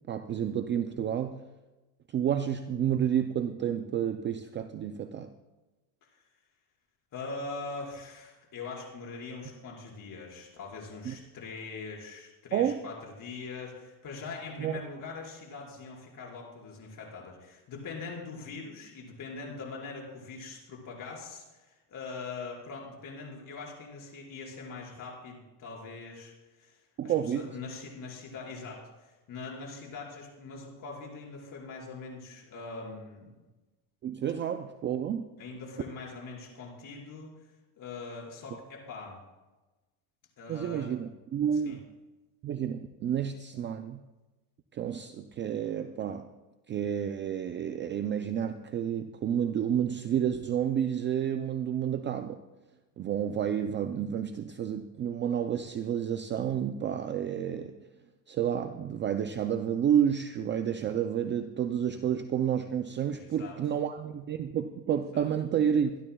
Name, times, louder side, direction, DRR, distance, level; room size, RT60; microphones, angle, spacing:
voice 1, 0.1-1.5 2.1-5.3 11.1-11.2 12.5-12.8 14.6-14.8 27.0-27.5 34.0-35.3 40.5-41.9 42.4-44.0 44.7-46.3 46.7-52.4 53.0-57.8 58.3-66.0, right 9 dB, 25° right, 8 dB, 0.4 m, -30 dB
voice 2, 7.1-33.3 35.4-37.3 37.8-39.2 40.4-40.9 41.6-41.8 63.2-63.6 65.1-65.3, left 4 dB, 40° left, -2 dB, 5.0 m, -42 dB
24.5 x 12.0 x 2.3 m, 1.1 s
cardioid pair, 135°, 49 cm